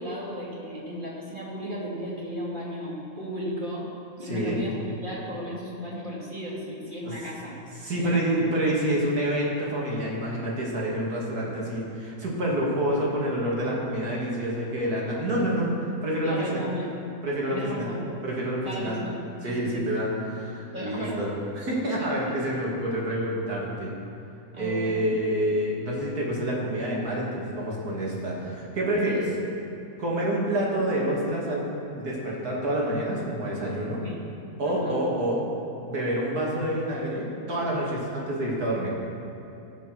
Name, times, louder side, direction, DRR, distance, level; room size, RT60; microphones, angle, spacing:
voice 1, 0.0-3.9 4.2-7.6 8.0-8.5 16.2-16.9 17.5-18.0 18.6-19.8 20.7-21.2 24.5-25.1 29.0-29.3 34.0-34.2 34.6-35.0, equal, 30° right, -6 dB, 2.8 m, -35 dB
voice 2, 4.2-4.6 7.0-7.1 7.8-15.7 16.0-16.6 17.2-17.9 18.2-19.0 19.4-23.9 24.6-29.3 30.0-31.7 31.9-34.0 34.6-35.4 35.9-38.9, right 1 dB, 70° right, -4 dB, 2.9 m, -27 dB
18.0 x 6.1 x 6.1 m, 2.8 s
omnidirectional pair, 1.7 m